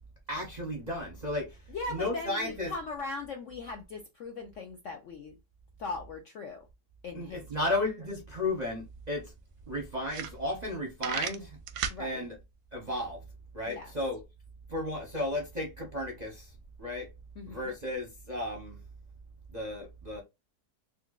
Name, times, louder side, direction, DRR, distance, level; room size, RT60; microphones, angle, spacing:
voice 1, 0.3-1.6 1.9-2.7 7.1-9.3 9.7-11.6 12.0-12.3 12.7-13.2 13.5-14.2 14.7-16.5 16.8-17.1 17.5-18.8 19.5-20.2, left 1 dB, 40° right, 0.6 m, -34 dB
voice 2, 1.7-5.4 5.8-6.7 7.0-7.7 11.9-12.3 13.7-13.9 17.4-17.7, left 3 dB, 65° left, 0.7 m, -39 dB
sound 1, 8.6-8.7 9.0-9.1 9.6-9.7 10.0-10.7 11.0-12.0, right 9 dB, 85° right, 1.3 m, -34 dB
4.3 x 2.5 x 2.4 m
omnidirectional pair, 1.9 m